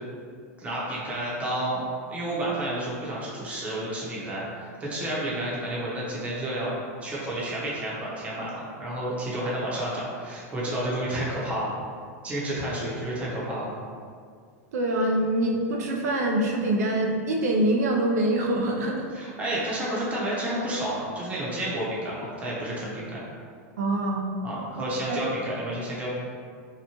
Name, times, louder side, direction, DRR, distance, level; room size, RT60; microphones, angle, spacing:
voice 1, 0.6-1.8 2.1-6.7 7.0-11.7 12.2-13.7 19.1-23.2 24.4-26.1, right 1 dB, 15° right, -6 dB, 0.6 m, -30 dB
voice 2, 14.7-19.1 23.8-24.2 25.1-25.2, right 1 dB, 90° right, 0 dB, 0.4 m, -24 dB
2.8 x 2.1 x 2.8 m, 2.1 s
supercardioid pair, 145°, 9 cm